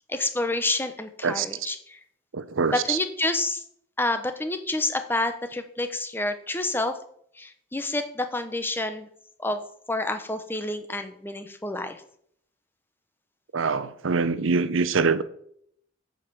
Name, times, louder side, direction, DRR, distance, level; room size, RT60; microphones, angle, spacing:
voice 1, 0.1-2.0 2.8-3.6 4.0-6.9 7.4-9.1 9.4-9.6 9.9-12.0, left 2 dB, 10° left, 0.8 m, -28 dB
voice 2, 1.2-1.7 2.3-3.0 13.5-15.2, right 5 dB, 85° right, 0.7 m, -24 dB
9.2 x 5.3 x 7.0 m
head